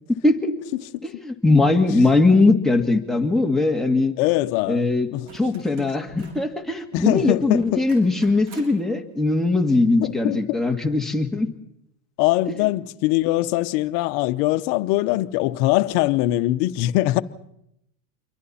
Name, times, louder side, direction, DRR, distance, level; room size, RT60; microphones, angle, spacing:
voice 1, 0.2-0.5 1.0-4.1 4.7-11.5 12.5-12.6, left 3 dB, ahead, 1.9 m, -20 dB
voice 2, 4.2-5.2 6.9-7.8 10.0-10.6 12.2-17.2, left 17 dB, 60° left, 1.0 m, -22 dB
sound 1, 5.2-6.5 7.5-8.9 10.5-10.6, right 3 dB, 65° right, 6.6 m, -46 dB
28.0 x 23.0 x 4.3 m
supercardioid pair, 120°, 45 cm